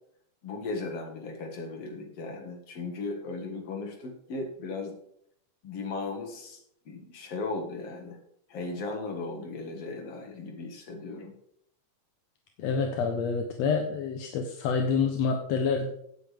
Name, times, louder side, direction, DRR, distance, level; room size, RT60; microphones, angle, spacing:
voice 1, 0.4-5.0 5.6-6.6 6.9-8.2 8.5-11.3, left 3 dB, 50° left, 2 dB, 2.8 m, -36 dB
voice 2, 12.6-15.9, left 5 dB, 65° left, 4 dB, 1.9 m, -27 dB
16.5 x 8.5 x 3.6 m, 0.71 s
omnidirectional pair, 3.6 m